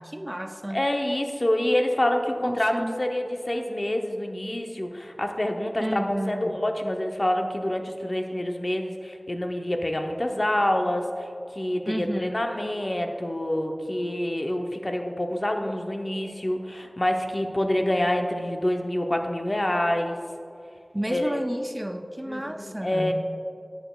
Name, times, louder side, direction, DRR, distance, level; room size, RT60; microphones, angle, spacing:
voice 1, 0.0-0.8 2.4-2.9 5.8-6.6 11.9-12.4 20.9-23.1, right 1 dB, 15° right, 6 dB, 0.4 m, -31 dB
voice 2, 0.7-20.2 21.1-21.4 22.3-23.1, left 1 dB, 45° left, 4 dB, 0.7 m, -27 dB
10.5 x 8.1 x 2.3 m, 2.6 s
wide cardioid pair, 45°, 0 cm